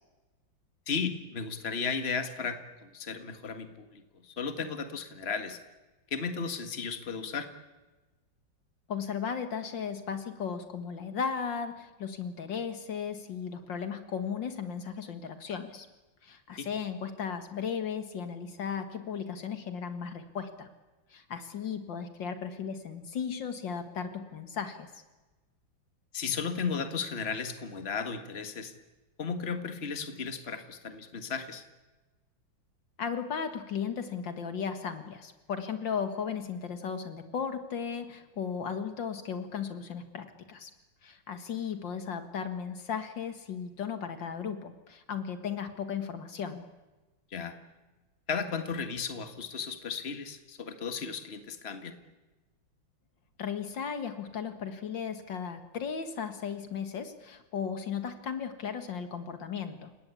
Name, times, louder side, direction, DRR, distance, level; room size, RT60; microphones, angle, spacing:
voice 1, 0.9-5.6 6.1-7.5 16.6-16.7 26.1-28.7 29.2-31.6 47.3-47.6 48.3-51.9, left 5 dB, 35° left, 8 dB, 1.9 m, -35 dB
voice 2, 8.9-15.9 16.2-20.7 21.1-25.0 33.0-40.7 41.0-46.6 53.4-59.9, left 7 dB, 75° left, 8 dB, 2.4 m, -36 dB
29.5 x 18.0 x 8.4 m, 1.2 s
omnidirectional pair, 2.1 m